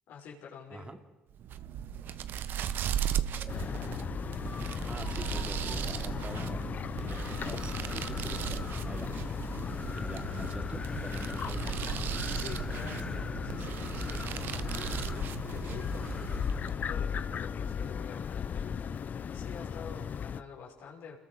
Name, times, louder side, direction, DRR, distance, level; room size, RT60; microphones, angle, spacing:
voice 1, 0.1-0.9 12.4-19.0 19.3-21.2, left 6 dB, 75° left, -2 dB, 5.8 m, -48 dB
sound 1, 1.3-16.9, right 9 dB, 65° right, 1.1 m, -37 dB
Wind, 3.3-16.9, left 3 dB, 25° left, 1.1 m, -46 dB
sound 2, 3.5-20.4, left 7 dB, 50° left, 0.8 m, -36 dB
voice 2, 4.9-6.7 6.9-9.1 9.9-11.9, right 3 dB, 25° right, 6 dB, 2.9 m, -45 dB
28.0 x 21.0 x 6.5 m, 1.2 s
supercardioid pair, 70°, 4 cm